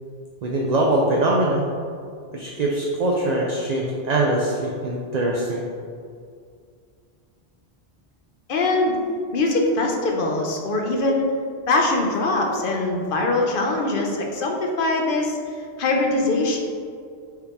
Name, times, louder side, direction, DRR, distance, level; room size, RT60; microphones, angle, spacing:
voice 1, 0.4-1.7 2.3-5.7, right 1 dB, 55° right, -2 dB, 0.5 m, -22 dB
voice 2, 8.5-9.0 9.3-11.3 11.7-15.4 15.8-16.6, left 2 dB, 55° left, 1 dB, 0.7 m, -22 dB
4.6 x 3.3 x 3.4 m, 2.2 s
omnidirectional pair, 1.1 m